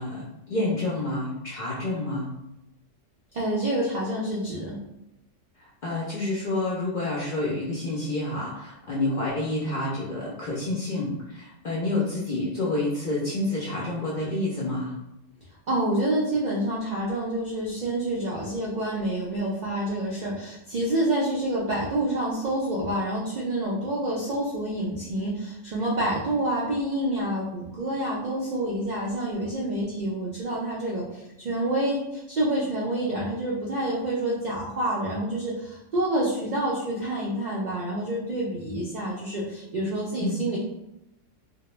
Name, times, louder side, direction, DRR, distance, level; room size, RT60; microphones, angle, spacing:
voice 1, 0.0-2.3 5.8-14.9 40.2-40.4, left 2 dB, 60° left, -6 dB, 0.5 m, -28 dB
voice 2, 3.3-4.8 15.7-40.6, right 1 dB, 70° right, -5 dB, 0.4 m, -28 dB
2.1 x 2.1 x 3.0 m, 0.88 s
omnidirectional pair, 1.3 m